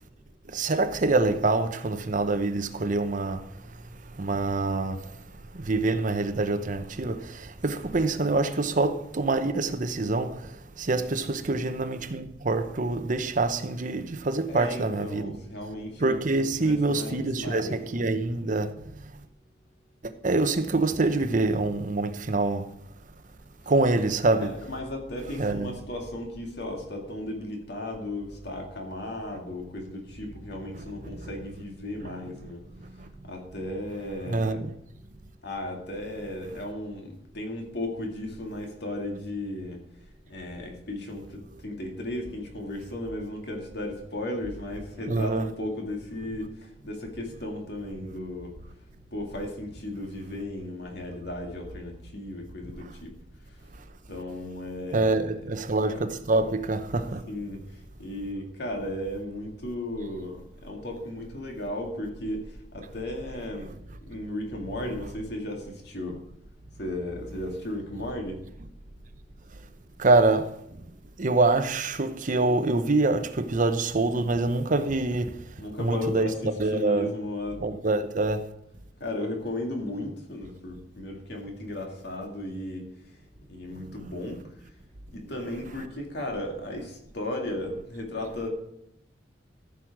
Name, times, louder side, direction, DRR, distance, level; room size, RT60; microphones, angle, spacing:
voice 1, 0.5-15.4 16.0-18.9 20.0-22.7 23.7-24.5 25.4-25.7 30.7-31.3 32.0-32.1 32.8-33.1 34.3-34.7 45.1-45.5 52.8-52.9 54.9-57.3 70.0-70.8 71.2-76.3 76.6-77.1 77.6-78.5, right 2 dB, 45° right, 0.8 m, -26 dB
voice 2, 14.5-18.2 24.4-32.7 33.2-34.6 35.4-39.8 40.3-48.6 49.1-53.2 54.1-55.3 55.9-56.0 57.3-66.2 66.8-68.4 75.6-77.6 79.0-82.9 83.5-84.7 85.1-88.5, left 1 dB, 65° left, 2.2 m, -35 dB
14.0 x 6.3 x 4.7 m
head